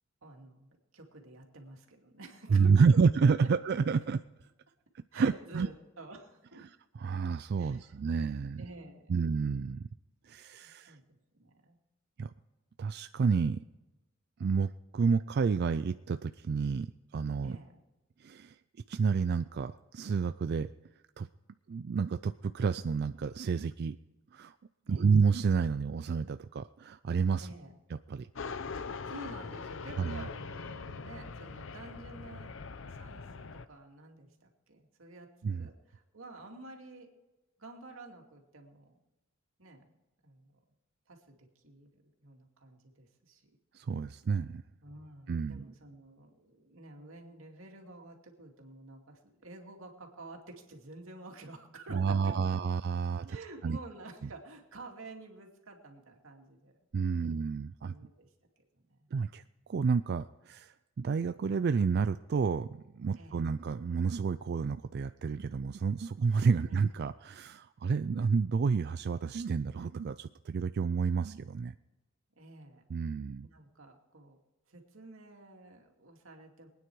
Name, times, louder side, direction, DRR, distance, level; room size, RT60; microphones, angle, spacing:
voice 1, 0.2-3.0 3.4-3.5 5.1-6.6 7.6-8.0 8.6-9.2 10.6-11.0 11.4-11.8 17.4-17.8 24.9-25.1 27.4-27.8 29.1-37.1 37.6-39.0 39.6-39.9 40.2-40.5 41.1-43.5 44.8-52.6 53.3-56.8 57.2-57.3 57.8-58.3 58.7-59.1 63.2-63.5 66.7-66.8 72.4-72.8 73.4-74.4 74.7-76.7, right 2 dB, 85° right, 2 dB, 2.4 m, -50 dB
voice 2, 2.5-4.2 5.1-5.7 7.0-8.6 9.1-9.9 10.2-11.0 12.2-12.3 12.8-13.6 14.4-16.9 17.1-17.6 18.2-18.6 18.9-20.7 21.2-21.3 21.7-24.0 24.3-24.5 24.9-27.5 28.1-28.3 30.0-30.2 35.4-35.7 43.7-44.6 45.3-45.7 51.9-53.4 53.6-53.8 56.9-58.0 59.1-59.4 59.7-71.7 72.9-73.5, right 5 dB, 50° right, 11 dB, 0.4 m, -29 dB
sound 1, 28.3-33.7, left 4 dB, 65° left, 0.7 m, -42 dB
23.0 x 9.5 x 4.7 m, 1.1 s
head